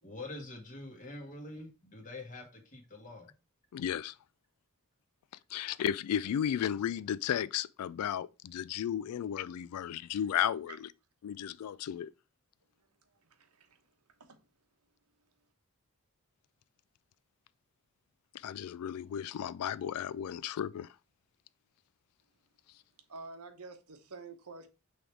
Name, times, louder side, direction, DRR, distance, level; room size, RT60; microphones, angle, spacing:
voice 1, 0.0-3.3, left 2 dB, 35° left, 1.8 m, -45 dB
voice 2, 3.7-4.2 5.5-10.9 11.2-12.1 18.3-20.9, left 9 dB, 80° left, 0.3 m, -34 dB
voice 3, 13.0-13.9 14.2-14.5 23.1-24.7, right 3 dB, 90° right, 1.1 m, -49 dB
6.2 x 3.5 x 4.6 m
head